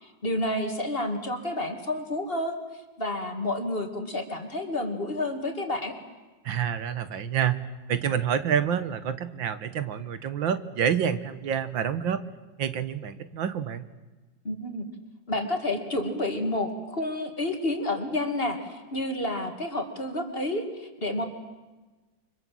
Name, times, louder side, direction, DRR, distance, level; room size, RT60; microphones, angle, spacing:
voice 1, 0.0-2.6 3.0-6.0 14.4-14.9 15.3-21.3, left 1 dB, 30° left, 5 dB, 2.7 m, -30 dB
voice 2, 6.5-7.6 7.9-12.2 12.6-13.9, right 8 dB, 80° right, 12 dB, 2.0 m, -28 dB
30.0 x 24.5 x 7.8 m, 1.2 s
omnidirectional pair, 2.0 m